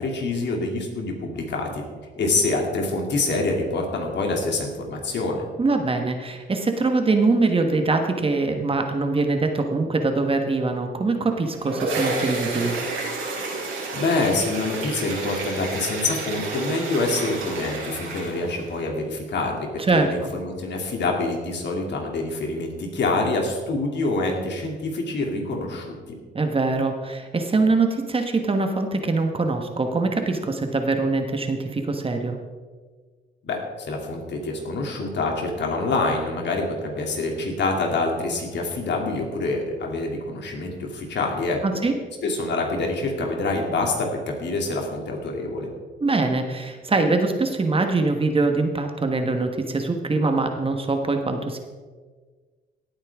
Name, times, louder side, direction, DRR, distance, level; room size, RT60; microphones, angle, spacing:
voice 1, 0.0-1.8 2.2-5.4 13.9-26.0 33.4-41.8 42.2-45.7, left 2 dB, 60° left, 1 dB, 2.7 m, -26 dB
voice 2, 5.6-12.7 19.9-20.1 26.3-32.4 41.6-41.9 46.0-51.6, right 3 dB, 30° right, 5 dB, 1.3 m, -23 dB
sound 1, 11.3-18.8, right 2 dB, 85° right, 4.3 m, -30 dB
17.5 x 8.7 x 3.6 m, 1.5 s
cardioid pair, 90°, 20 cm